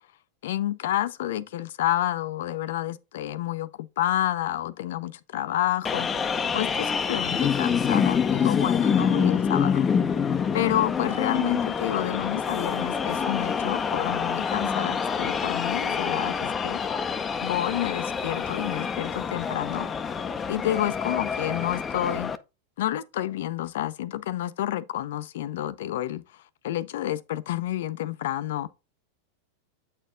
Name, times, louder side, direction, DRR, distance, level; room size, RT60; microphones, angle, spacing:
voice 1, 0.4-9.9 10.5-16.8 17.4-19.9 20.5-22.3 22.8-26.2 26.6-28.7, left 13 dB, 75° left, 0.6 m, -29 dB
sound 1, 5.9-22.4, left 6 dB, 20° left, 0.6 m, -26 dB
8.1 x 4.4 x 3.8 m
supercardioid pair, 125°, 0 cm